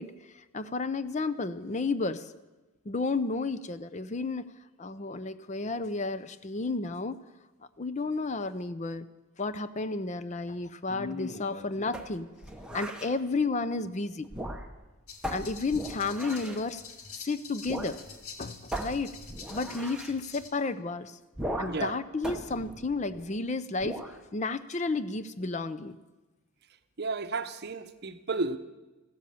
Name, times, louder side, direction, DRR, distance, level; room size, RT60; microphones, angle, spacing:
voice 1, 0.0-2.3 2.9-4.5 4.8-7.2 7.8-9.1 9.4-12.3 12.7-14.3 15.3-16.8 17.1-18.0 18.4-19.1 19.5-21.2 21.6-24.0 24.3-26.0, left 3 dB, 35° left, 0.5 m, -32 dB
sound 1, 11.9-13.1 14.2-14.9 15.2-16.6 17.7-18.0 18.2-18.3 18.7-20.2 21.3-21.9 22.2-23.4 23.8-24.2, equal, 5° right, 1.0 m, -38 dB
sound 2, 15.1-20.5, left 5 dB, 85° left, 1.9 m, -47 dB
voice 2, 21.7-22.0 27.0-28.6, right 3 dB, 50° right, 0.8 m, -32 dB
15.0 x 12.5 x 7.0 m
head